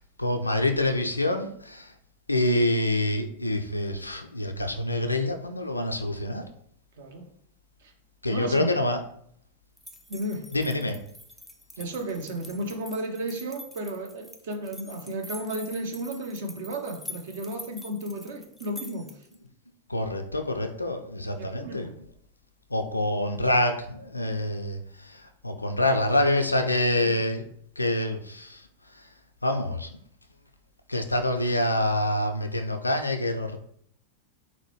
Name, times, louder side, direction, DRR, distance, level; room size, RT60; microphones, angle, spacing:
voice 1, 0.0-1.9 2.3-6.5 8.2-9.0 10.5-11.0 19.9-21.9 22.7-27.5 27.8-28.7 28.9-29.1 29.4-30.0 30.9-33.6, left 1 dB, 85° left, 6 dB, 0.3 m, -26 dB
voice 2, 7.0-7.3 7.8-7.9 8.3-8.8 10.1-10.5 11.8-19.1 21.4-21.9 27.0-27.2, right 1 dB, 55° right, 4 dB, 0.6 m, -33 dB
sound 1, 9.8-19.3, left 1 dB, 5° right, 0.4 m, -45 dB
4.0 x 2.1 x 3.0 m, 0.66 s
figure-of-eight pair, 90°, 0 cm